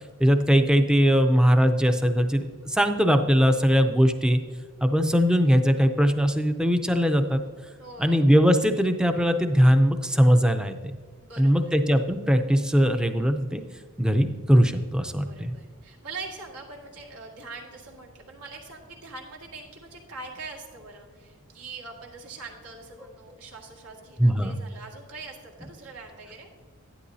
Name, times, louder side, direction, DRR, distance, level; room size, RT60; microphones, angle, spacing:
voice 1, 0.2-4.4 4.8-7.4 8.0-10.8 11.4-13.6 14.0-15.5 24.2-24.6, equal, 5° right, 7 dB, 0.5 m, -20 dB
voice 2, 7.8-8.3 11.2-11.7 15.0-26.5, right 3 dB, 85° right, -1 dB, 1.9 m, -43 dB
11.5 x 10.0 x 2.7 m, 1.5 s
head